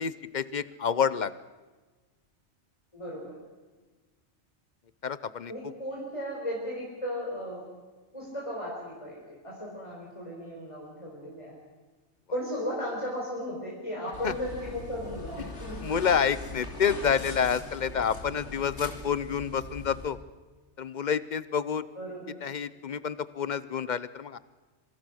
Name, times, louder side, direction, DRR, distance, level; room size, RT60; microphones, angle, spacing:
voice 1, 0.0-1.3 5.0-5.5 14.2-14.3 15.8-20.2 20.8-21.9 22.4-24.4, left 7 dB, 45° left, 16 dB, 0.9 m, -28 dB
voice 2, 2.9-3.4 5.5-7.6 8.1-11.6 12.3-15.8 21.9-22.4, equal, 25° left, -4 dB, 4.9 m, -36 dB
sound 1, 14.1-20.1, left 2 dB, 70° left, 3.1 m, -41 dB
26.0 x 24.5 x 6.5 m, 1.3 s
omnidirectional pair, 1.2 m